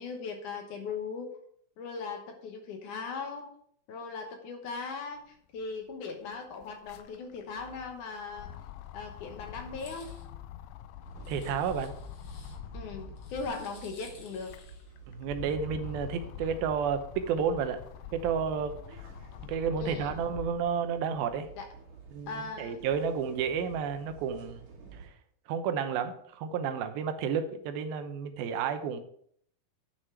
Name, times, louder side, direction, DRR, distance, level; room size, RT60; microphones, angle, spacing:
voice 1, 0.0-1.3 1.8-3.5 3.9-8.5 8.9-10.2 12.7-14.5 19.8-20.2 21.6-21.7 22.3-22.8, left 4 dB, 65° left, 4 dB, 2.4 m, -39 dB
sound 1, 5.6-5.7 5.9-13.7 14.2-20.7 21.2-22.4, left 11 dB, 80° left, 2.1 m, -45 dB
sound 2, 9.7-10.3 11.2-12.6 13.2-14.9, left 4 dB, 50° left, 1.8 m, -55 dB
sound 3, 11.0-25.1, right 5 dB, 60° right, 3.8 m, -51 dB
voice 2, 11.3-11.9 15.1-17.8 18.1-18.8 19.5-21.5 22.1-25.1 25.5-29.0, right 7 dB, 90° right, 8 dB, 2.7 m, -31 dB
9.7 x 6.3 x 4.6 m, 0.65 s
omnidirectional pair, 4.2 m